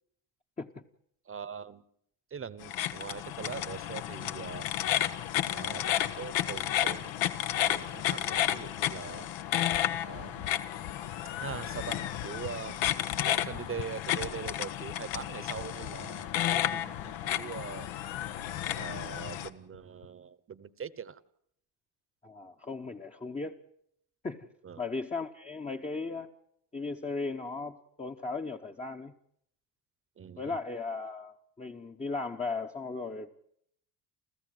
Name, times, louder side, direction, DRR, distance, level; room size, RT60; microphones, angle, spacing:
voice 1, 1.3-1.8 2.3-4.7 5.5-7.2 7.7-9.3 10.0-10.5 11.4-12.8 13.2-17.9 18.7-21.2 24.6-24.8 30.2-30.6, right 7 dB, 30° right, 1.0 m, -42 dB
sound 1, 2.6-19.5, left 12 dB, 80° left, 1.3 m, -32 dB
sound 2, 9.7-18.7 19.0-19.3 19.7-20.1, left 12 dB, 60° left, 1.1 m, -47 dB
voice 2, 22.2-23.6 24.2-24.5 24.8-26.3 26.7-29.1 30.4-33.3, left 3 dB, 15° left, 0.9 m, -36 dB
30.0 x 14.5 x 7.7 m
cardioid pair, 115°, 44 cm